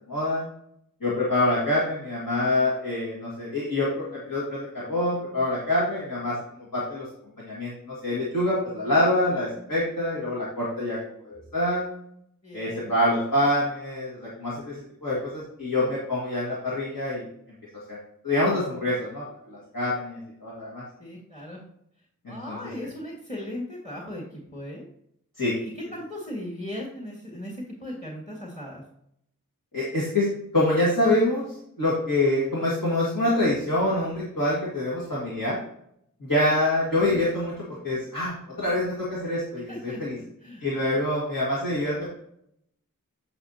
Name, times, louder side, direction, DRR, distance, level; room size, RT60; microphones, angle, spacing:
voice 1, 0.1-0.5 1.0-6.4 6.7-7.1 7.4-11.9 12.5-17.3 17.9-18.0 18.2-20.8 22.2-22.6 25.4-25.5 29.7-31.5 31.8-35.6 36.2-40.2 40.6-42.2, left 1 dB, 75° left, -7 dB, 1.9 m, -26 dB
voice 2, 12.4-12.9 21.0-21.7 22.3-24.9 25.5-28.8 39.7-40.0 40.4-40.7, left 1 dB, 25° left, -2 dB, 1.7 m, -37 dB
9.6 x 5.6 x 2.8 m, 0.72 s
wide cardioid pair, 50°, 33 cm